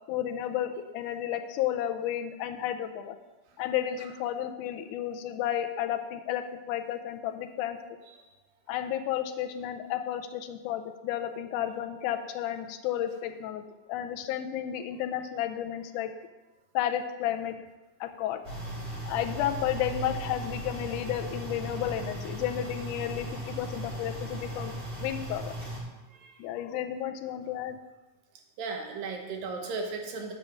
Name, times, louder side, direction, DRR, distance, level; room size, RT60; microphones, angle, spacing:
voice 1, 0.1-3.2 3.6-7.8 8.7-16.1 16.7-17.6 18.0-18.4 19.1-24.7 25.0-25.5 26.4-27.8, left 11 dB, 80° left, 7 dB, 2.0 m, -32 dB
sound 1, 18.4-25.8, right 1 dB, 20° right, 3.3 m, -37 dB
voice 2, 26.1-26.4 28.6-30.3, right 4 dB, 90° right, 3 dB, 2.9 m, -36 dB
8.4 x 5.2 x 7.4 m, 1.1 s
omnidirectional pair, 3.9 m